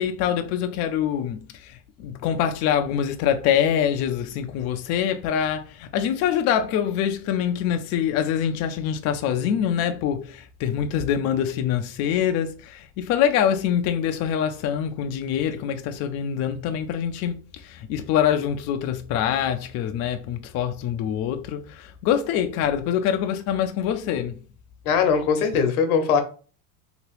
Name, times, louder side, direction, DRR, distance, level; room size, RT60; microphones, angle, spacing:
voice 1, 0.0-24.4, left 9 dB, 40° left, 0.4 m, -25 dB
voice 2, 24.8-26.2, left 6 dB, 75° left, 0.9 m, -20 dB
2.9 x 2.9 x 3.1 m
hypercardioid pair, 105°, 44 cm